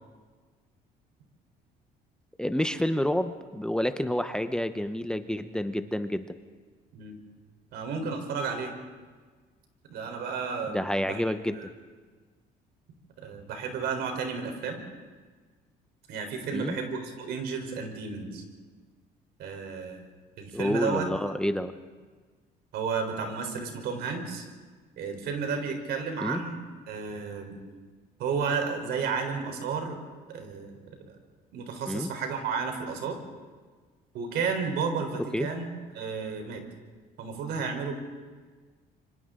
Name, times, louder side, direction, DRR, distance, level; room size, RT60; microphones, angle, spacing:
voice 1, 2.4-6.2 10.7-11.6 16.5-16.8 20.5-21.7 26.2-26.4 31.9-32.1 35.3-35.5, left 1 dB, 5° left, 9 dB, 0.9 m, -29 dB
voice 2, 7.7-8.7 9.9-11.2 11.5-11.7 13.2-14.8 16.1-18.4 19.4-20.0 20.4-21.0 22.7-24.5 25.0-27.6 28.2-30.0 30.3-30.8 31.1-31.2 31.5-33.2 34.1-35.6 35.9-36.6 37.2-37.9, right 5 dB, 75° right, 5 dB, 4.0 m, -32 dB
27.5 x 25.0 x 3.8 m, 1.4 s
cardioid pair, 110°, 17 cm